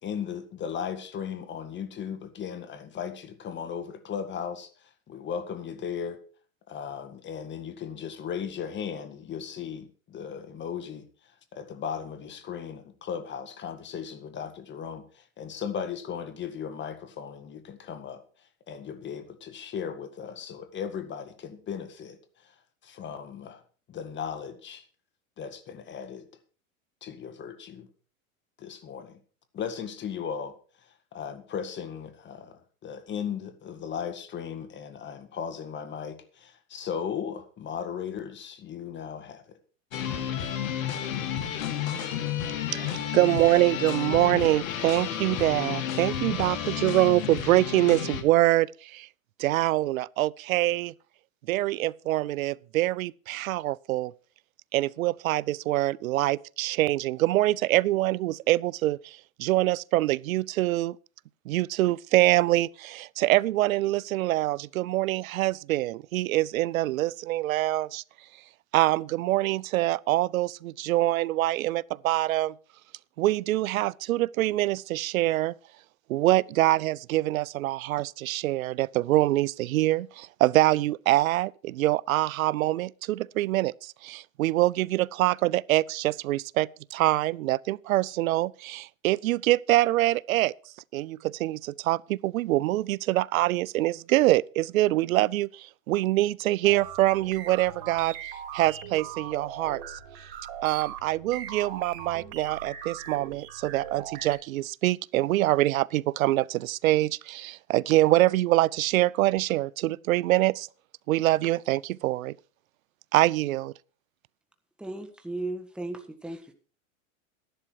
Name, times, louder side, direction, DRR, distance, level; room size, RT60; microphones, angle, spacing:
voice 1, 0.0-4.7 5.1-6.2 6.7-11.0 11.5-18.2 18.7-22.2 22.8-23.6 23.9-24.8 25.4-26.2 27.0-27.9 28.6-29.2 29.5-30.5 31.1-39.6, left 7 dB, 25° left, 1.8 m, -36 dB
sound 1, 39.9-48.2, left 9 dB, 80° left, 2.2 m, -31 dB
voice 2, 42.7-49.1 49.4-50.9 51.5-54.1 54.7-61.0 61.5-68.0 68.7-72.5 73.2-75.5 76.1-90.5 90.9-98.2 98.5-99.8 100.6-110.7 111.1-112.3 113.1-113.7, right 16 dB, 90° right, 0.5 m, -25 dB
sound 2, 96.6-104.4, right 9 dB, 60° right, 4.0 m, -40 dB
voice 3, 114.8-116.5, right 2 dB, ahead, 1.5 m, -36 dB
12.5 x 11.0 x 4.6 m
hypercardioid pair, 120°, 40 cm